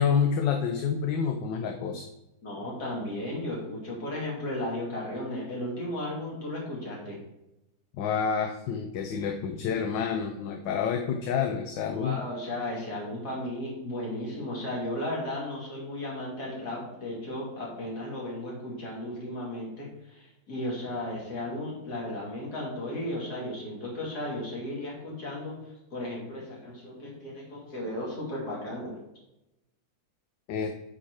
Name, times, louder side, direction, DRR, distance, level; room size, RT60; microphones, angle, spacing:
voice 1, 0.0-2.1 8.0-12.2 20.5-20.6 30.5-30.7, left 7 dB, 75° left, 4 dB, 1.4 m, -28 dB
voice 2, 2.4-7.2 11.9-25.6 25.9-29.0, left 1 dB, 50° left, -4 dB, 3.3 m, -35 dB
8.6 x 5.1 x 4.7 m, 0.90 s
omnidirectional pair, 2.1 m